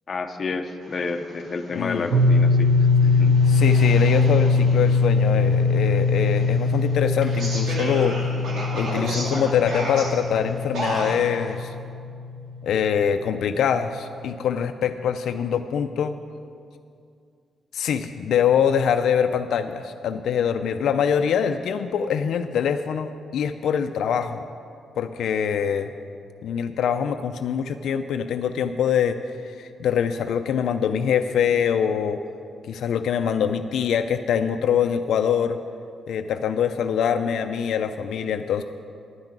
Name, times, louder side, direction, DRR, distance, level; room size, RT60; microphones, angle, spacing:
voice 1, 0.1-2.7 3.0-3.3, left 4 dB, 35° left, 5 dB, 0.6 m, -30 dB
sound 1, 0.8-11.5, right 1 dB, 65° right, 2.5 m, -34 dB
voice 2, 1.7-2.2 3.5-8.2 8.7-11.7 12.6-16.2 17.7-24.4 25.0-25.9 26.4-32.2 32.7-35.6 36.1-38.6, left 7 dB, 75° left, 8 dB, 0.4 m, -24 dB
sound 2, 2.1-12.7, left 4 dB, 85° right, 0.8 m, -21 dB
11.0 x 5.9 x 9.0 m, 2.4 s
wide cardioid pair, 165°, 0 cm